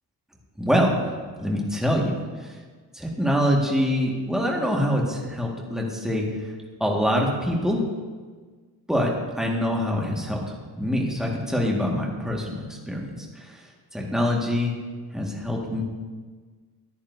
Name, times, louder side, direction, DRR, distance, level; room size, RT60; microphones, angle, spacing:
voice 1, 0.6-0.9 1.4-2.1 2.9-6.2 6.8-7.8 8.9-9.1 9.4-10.4 10.8-13.1 13.9-14.7 15.1-15.8, equal, ahead, -2 dB, 1.7 m, -24 dB
14.0 x 10.0 x 2.7 m, 1.5 s
cardioid pair, 120°, 39 cm